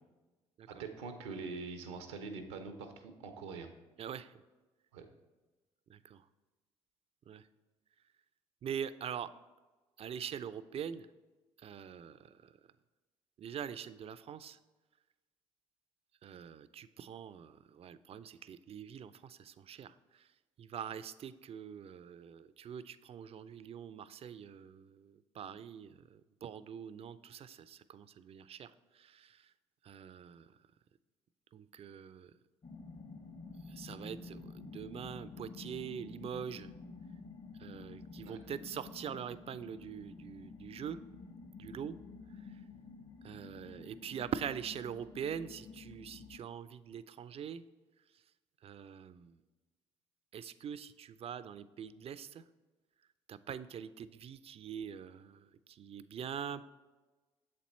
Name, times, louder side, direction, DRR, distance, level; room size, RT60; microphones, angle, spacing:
voice 1, 0.7-3.7 4.9-5.0 38.2-38.4, right 4 dB, 85° right, 7 dB, 0.6 m, -44 dB
voice 2, 4.0-4.3 5.9-6.3 7.3-7.5 8.6-9.3 10.0-11.1 11.6-12.6 13.4-14.6 16.2-20.3 20.6-29.5 29.8-30.6 31.5-32.3 33.6-36.7 37.6-41.0 41.6-42.0 42.3-42.6 43.2-47.6 48.1-48.2 48.6-49.4 50.3-52.4 53.3-56.6, right 8 dB, 45° right, 15 dB, 0.4 m, -44 dB
sound 1, 32.6-46.4, left 4 dB, 35° left, 0.7 m, -50 dB
7.1 x 4.3 x 4.2 m, 1.2 s
hypercardioid pair, 55°, 15 cm